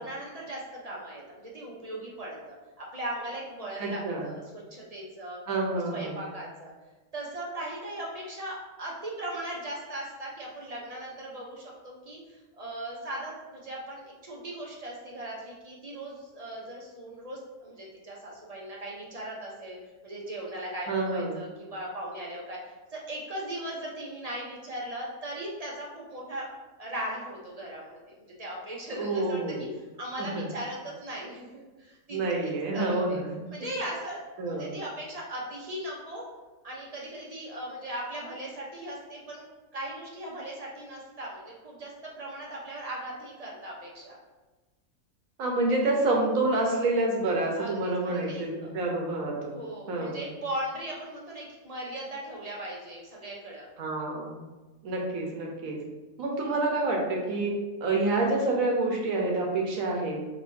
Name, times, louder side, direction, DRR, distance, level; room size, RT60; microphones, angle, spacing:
voice 1, 0.0-5.4 5.7-6.7 7.1-19.8 20.0-26.5 26.8-33.2 33.5-34.2 34.5-36.2 36.6-39.5 39.7-44.2 47.5-48.7 49.5-53.7, right 1 dB, 35° right, -3 dB, 0.6 m, -38 dB
voice 2, 3.8-4.3 5.5-6.2 20.9-21.4 28.9-29.7 30.2-30.5 32.1-33.4 34.4-34.7 45.4-49.6 49.9-50.2 53.8-54.5 54.8-55.8 56.2-57.5 57.8-60.2, right 2 dB, 70° right, 0 dB, 1.3 m, -28 dB
5.0 x 3.1 x 2.6 m, 1.2 s
omnidirectional pair, 1.5 m